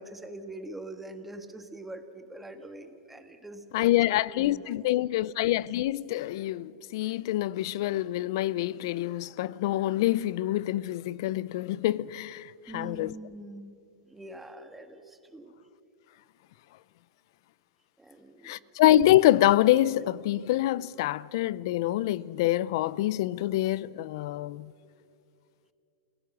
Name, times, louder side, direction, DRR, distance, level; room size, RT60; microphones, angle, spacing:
voice 1, 0.0-4.7 12.7-13.7 14.1-15.6 18.0-18.7, right 1 dB, 5° right, 1.5 m, -44 dB
voice 2, 3.7-13.1 18.4-24.7, left 14 dB, 60° left, 0.5 m, -26 dB
29.0 x 17.0 x 6.1 m
supercardioid pair, 140°, 3 cm